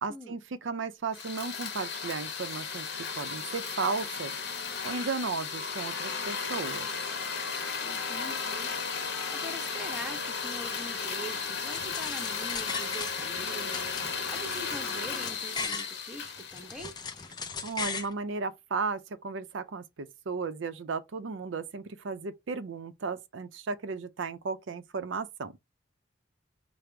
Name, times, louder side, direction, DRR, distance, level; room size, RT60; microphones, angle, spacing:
voice 1, 0.0-2.9 3.2-4.3 4.8-6.9 17.6-25.5, right 4 dB, 80° right, 0.5 m, -35 dB
sound 1, 1.1-17.3, left 5 dB, 60° left, 0.9 m, -35 dB
voice 2, 7.8-8.7 9.3-13.9 14.3-16.9, right 1 dB, 5° right, 0.9 m, -43 dB
sound 2, 11.7-13.4 13.7-15.9 16.4-18.1, left 5 dB, 20° left, 0.4 m, -38 dB
5.0 x 2.0 x 4.5 m
head